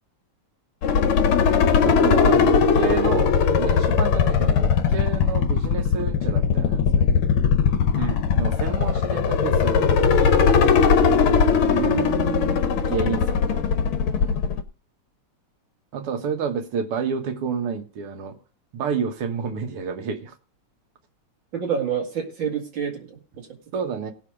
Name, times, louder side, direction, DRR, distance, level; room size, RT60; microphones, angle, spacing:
sound 1, 0.8-14.6, left 6 dB, 75° left, 1.7 m, -19 dB
voice 1, 1.8-7.1 8.4-10.3 12.6-13.7 14.2-14.4 15.9-18.4 18.7-20.3 23.7-24.1, right 6 dB, 80° right, 2.2 m, -30 dB
voice 2, 11.7-12.7 21.5-23.5, right 7 dB, 60° right, 2.9 m, -29 dB
16.5 x 6.3 x 4.9 m
omnidirectional pair, 2.4 m